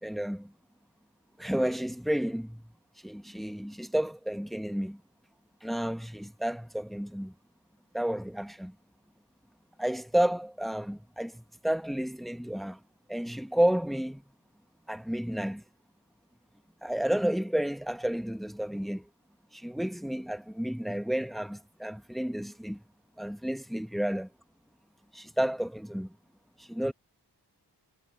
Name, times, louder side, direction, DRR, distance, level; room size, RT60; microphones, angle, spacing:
voice 1, 0.0-0.5 1.4-2.7 3.0-5.0 5.6-7.3 7.9-8.7 9.8-12.8 13.1-14.2 14.9-15.6 16.8-19.1 19.5-22.8 23.2-24.3 25.1-26.2 26.6-26.9, right 1 dB, ahead, 1.2 m, -31 dB
wide cardioid pair, 50°, 41 cm